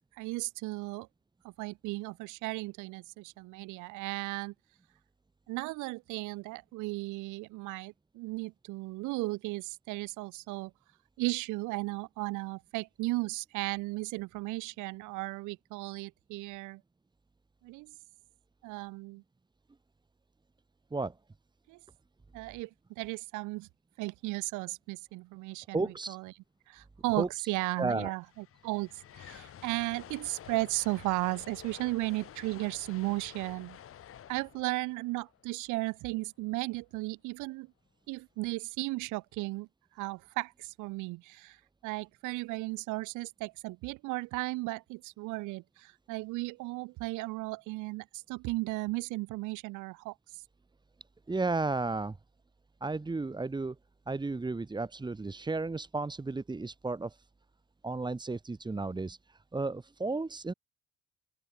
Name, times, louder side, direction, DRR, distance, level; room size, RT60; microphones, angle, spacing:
voice 1, 0.2-1.1 1.4-4.5 5.5-10.7 11.2-16.8 17.6-17.9 18.6-19.2 21.7-21.8 22.3-23.7 24.0-26.3 26.7-33.8 34.3-37.7 38.1-39.7 40.0-41.6 41.8-50.1, right 22 dB, 80° right, 2.3 m, -35 dB
voice 2, 25.7-26.2 27.2-27.5 27.8-28.1 51.3-52.2 52.8-53.7 54.1-57.2 57.8-60.5, right 3 dB, 15° right, 3.3 m, -33 dB
sound 1, 27.7-27.8 28.0-36.2, left 10 dB, 45° left, 7.8 m, -51 dB
open air
cardioid pair, 125°, 30 cm